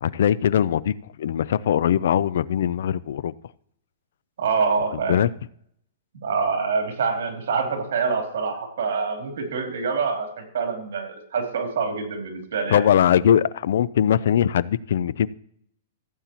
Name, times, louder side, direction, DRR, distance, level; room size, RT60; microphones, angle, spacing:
voice 1, 0.0-3.3 5.1-5.3 12.7-15.3, left 9 dB, 70° left, 20 dB, 0.4 m, -21 dB
voice 2, 4.4-5.2 6.2-12.9, right 5 dB, 75° right, 3 dB, 3.1 m, -26 dB
15.5 x 8.6 x 3.0 m, 0.67 s
hypercardioid pair, 150°, 0 cm